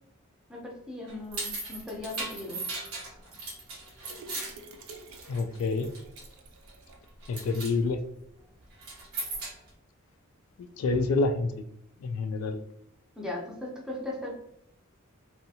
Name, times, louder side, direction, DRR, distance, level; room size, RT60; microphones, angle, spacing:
voice 1, 0.5-2.6 13.2-14.3, left 2 dB, 5° right, -2 dB, 0.6 m, -38 dB
sound 1, 1.1-5.6 5.8-6.3 6.7-6.9 7.2-7.7 8.7-9.7, right 2 dB, 90° right, 1.0 m, -37 dB
sound 2, 4.0-7.1 7.5-7.6 7.9-8.0, right 3 dB, 70° right, 0.4 m, -49 dB
voice 2, 5.3-5.9 7.3-8.0 10.6-11.6 12.0-12.6, left 3 dB, 75° left, 9 dB, 0.3 m, -28 dB
2.6 x 2.4 x 2.7 m, 0.74 s
head